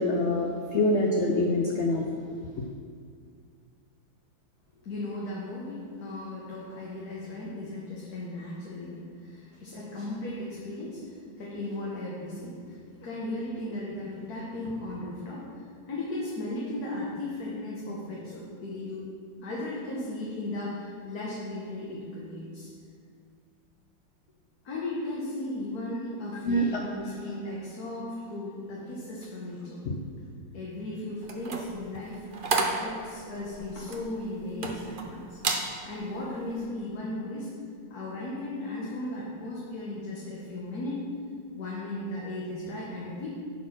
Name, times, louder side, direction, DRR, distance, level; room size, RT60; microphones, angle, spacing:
voice 1, 0.0-2.0 26.5-26.7 29.9-30.0, left 1 dB, 80° left, 1 dB, 0.6 m, -25 dB
voice 2, 4.8-19.1 19.4-22.7 24.6-29.8 30.3-32.3 32.6-35.4 35.8-37.5 37.9-41.0 41.6-43.3, left 1 dB, 55° left, -6 dB, 1.7 m, -36 dB
sound 1, 31.2-35.1 35.4-35.7 36.2-36.4, right 4 dB, 75° right, 0.4 m, -31 dB
9.8 x 4.3 x 6.0 m, 2.2 s
omnidirectional pair, 2.0 m